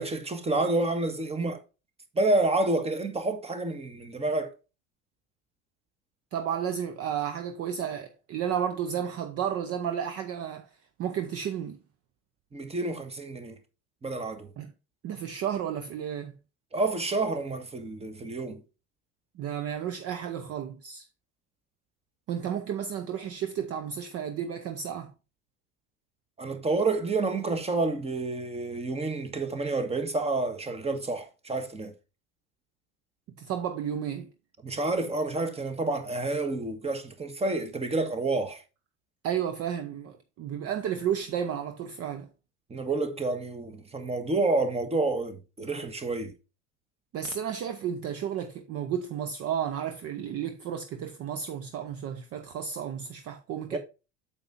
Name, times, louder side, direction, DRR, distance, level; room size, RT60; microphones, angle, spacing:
voice 1, 0.0-1.6 2.1-4.5 12.5-13.6 14.0-14.5 16.7-18.6 26.4-31.9 34.6-38.6 42.7-46.3 53.7-53.8, right 2 dB, 15° right, 1.5 m, -29 dB
voice 2, 6.3-10.7 11.0-11.8 14.6-14.7 15.0-16.3 19.3-21.1 22.3-25.1 33.4-34.3 39.2-42.3 47.1-53.8, right 8 dB, 35° right, 0.9 m, -32 dB
8.7 x 7.4 x 2.6 m
figure-of-eight pair, 70°, 44 cm